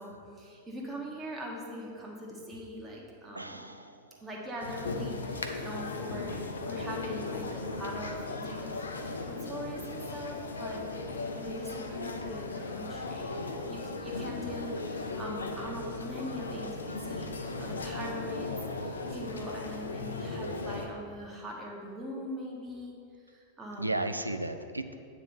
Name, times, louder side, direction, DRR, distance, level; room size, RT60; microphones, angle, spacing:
voice 1, 0.0-3.6 4.2-8.8 9.2-10.9 11.2-13.4 13.7-23.0 23.2-23.9, equal, 15° right, -2 dB, 1.7 m, -41 dB
voice 2, 3.3-4.2 10.0-10.1 10.4-10.5 23.8-24.9, right 2 dB, 85° right, 8 dB, 0.4 m, -35 dB
sound 1, 4.6-20.9, left 3 dB, 70° left, 0.7 m, -37 dB
9.0 x 3.8 x 6.9 m, 2.2 s
figure-of-eight pair, 90°, 0 cm